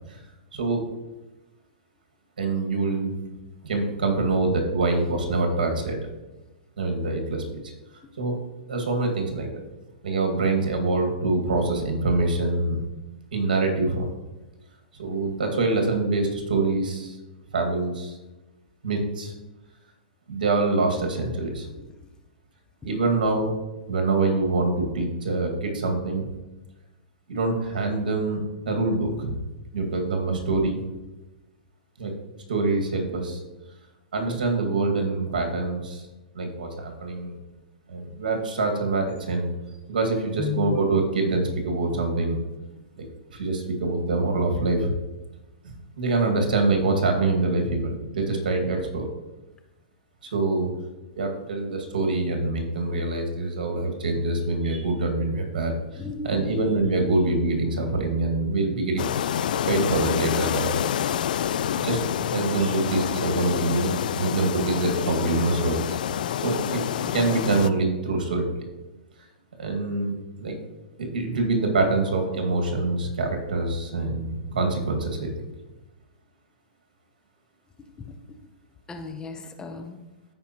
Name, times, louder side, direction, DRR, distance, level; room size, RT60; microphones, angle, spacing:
voice 1, 0.5-0.8 2.4-3.1 3.6-6.0 6.8-7.4 8.2-8.3 8.7-9.5 10.0-12.8 13.3-14.1 15.0-17.2 17.5-18.2 18.8-19.3 20.3-21.7 22.8-23.5 23.9-26.2 27.3-29.4 29.7-30.8 32.0-32.1 32.5-33.4 34.1-36.0 36.4-37.4 37.9-39.5 39.9-42.4 43.0-43.1 43.3-44.9 45.6-49.1 50.3-50.7 51.2-59.1 59.7-60.7 61.7-62.0 62.3-66.0 66.4-68.5 69.6-70.5 71.0-75.3, right 3 dB, 75° right, 2 dB, 2.0 m, -25 dB
voice 2, 40.4-40.8 56.0-56.6 57.0-57.2 78.1-78.4 78.9-80.0, left 7 dB, 15° left, 5 dB, 0.8 m, -34 dB
sound 1, 59.0-67.7, left 9 dB, 70° left, 0.4 m, -27 dB
14.5 x 5.1 x 3.0 m, 1.1 s
hypercardioid pair, 125°, 5 cm